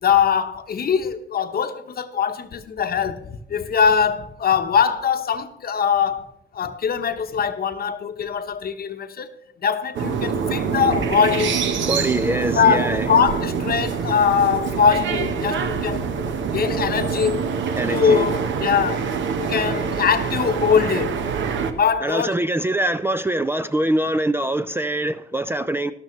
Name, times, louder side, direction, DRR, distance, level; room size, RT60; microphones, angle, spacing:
voice 1, 0.0-6.3 6.5-9.3 9.6-11.5 12.5-16.1 16.5-17.5 17.9-19.1 19.4-21.1 21.8-22.3, left 7 dB, 50° left, 1.0 m, -21 dB
sound 1, 9.9-21.7, right 6 dB, 70° right, 1.2 m, -25 dB
voice 2, 11.9-13.1 17.8-18.3 22.0-25.9, right 1 dB, 10° right, 0.4 m, -23 dB
13.0 x 12.0 x 3.2 m
cardioid pair, 90°, 20 cm